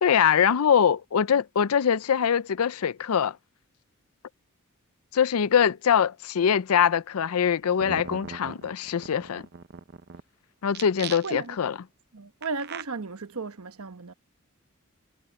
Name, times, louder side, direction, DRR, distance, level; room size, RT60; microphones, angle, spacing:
voice 1, 0.0-3.4 5.1-9.5 10.6-11.7, left 8 dB, 85° left, 0.5 m, -23 dB
sound 1, 7.5-7.6 7.8-10.2 10.7-11.6 12.4-12.8, right 6 dB, 50° right, 0.7 m, -39 dB
voice 2, 11.2-11.6 12.1-14.1, right 4 dB, 85° right, 1.1 m, -35 dB
head